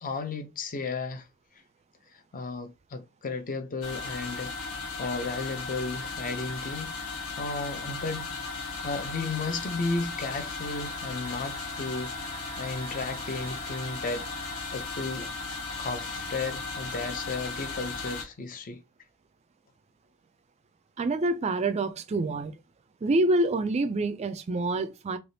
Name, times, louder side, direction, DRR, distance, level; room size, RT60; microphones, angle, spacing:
voice 1, 0.0-1.3 2.3-6.9 7.4-8.3 8.8-14.2 14.7-15.3 15.8-18.8, left 3 dB, 40° left, 0.5 m, -34 dB
sound 1, 3.8-18.2, left 3 dB, 65° left, 1.1 m, -36 dB
voice 2, 21.0-22.6 23.0-25.2, right 2 dB, 30° right, 0.3 m, -26 dB
3.3 x 2.8 x 2.7 m
head